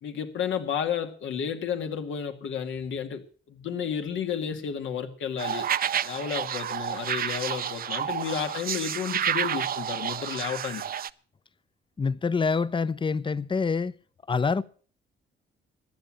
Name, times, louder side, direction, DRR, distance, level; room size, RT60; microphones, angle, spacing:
voice 1, 0.0-5.7 6.0-10.8, left 7 dB, 75° left, 2.2 m, -32 dB
sound 1, 5.4-11.1, right 9 dB, 50° right, 0.6 m, -30 dB
voice 2, 12.0-13.9 14.3-14.6, left 5 dB, 25° left, 0.7 m, -26 dB
14.5 x 10.5 x 7.5 m
cardioid pair, 90°, 20 cm